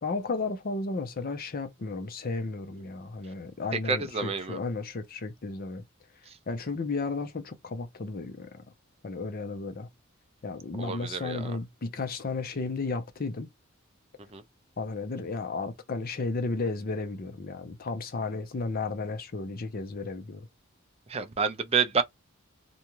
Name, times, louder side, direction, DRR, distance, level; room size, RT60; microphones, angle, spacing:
voice 1, 0.0-5.8 6.5-8.5 9.0-9.9 10.4-13.5 14.8-20.5, left 3 dB, 45° left, 0.6 m, -33 dB
voice 2, 3.9-4.6 10.8-11.5 14.3-14.4 21.1-22.0, right 5 dB, 30° right, 0.4 m, -28 dB
2.6 x 2.2 x 3.0 m
head